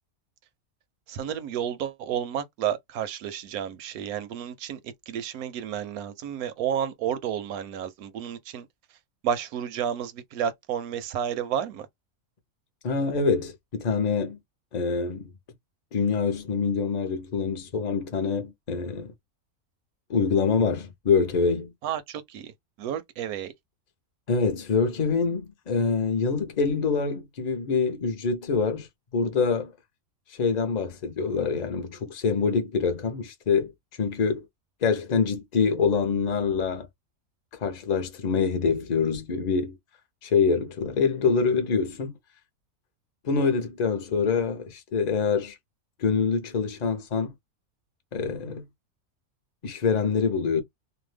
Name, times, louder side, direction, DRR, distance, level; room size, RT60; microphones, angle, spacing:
voice 1, 1.1-8.7 9.2-11.9 21.8-22.5 22.8-23.5, right 9 dB, 85° right, 1.1 m, -31 dB
voice 2, 12.8-14.4 14.7-15.3 15.9-19.1 20.1-21.7 24.3-28.9 29.1-29.7 30.3-33.7 34.0-34.4 34.8-36.9 37.6-39.8 40.2-42.2 43.2-45.6 46.0-47.3 48.1-48.6 49.6-50.6, left 5 dB, 40° left, 0.7 m, -25 dB
2.7 x 2.2 x 3.3 m
omnidirectional pair, 1.5 m